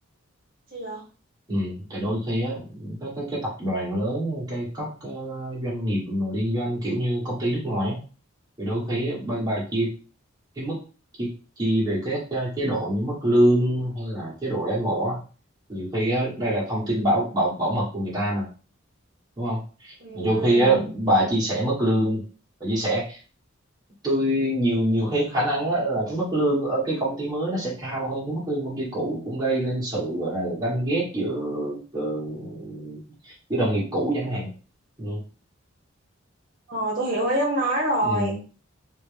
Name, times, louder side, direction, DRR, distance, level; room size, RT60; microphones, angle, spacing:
voice 1, 0.7-1.0 20.0-20.9 36.7-38.4, right 1 dB, 40° right, -4 dB, 1.4 m, -26 dB
voice 2, 1.5-8.0 8.6-9.9 10.6-10.8 11.2-11.3 11.6-15.2 15.7-18.5 19.4-22.2 22.6-23.2 24.0-34.5 35.0-35.2 38.0-38.3, right 1 dB, 20° right, -7 dB, 1.5 m, -25 dB
3.1 x 3.1 x 3.3 m, 0.36 s
head